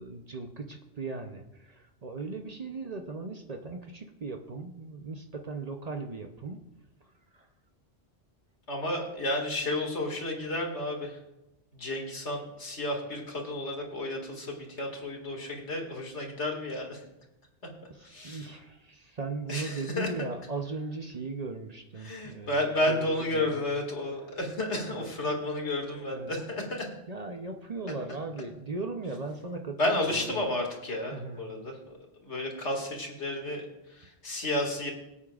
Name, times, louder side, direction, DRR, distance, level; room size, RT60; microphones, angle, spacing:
voice 1, 0.0-6.6 7.3-7.5 18.0-23.5 24.9-25.1 25.8-26.3 27.1-30.4 31.1-31.5, right 3 dB, 40° right, 5 dB, 0.7 m, -38 dB
voice 2, 8.7-11.2 11.7-17.0 18.0-18.6 19.5-20.3 22.0-26.9 29.8-34.9, left 1 dB, 80° left, 0 dB, 2.4 m, -32 dB
22.5 x 8.5 x 2.4 m, 0.93 s
omnidirectional pair, 1.1 m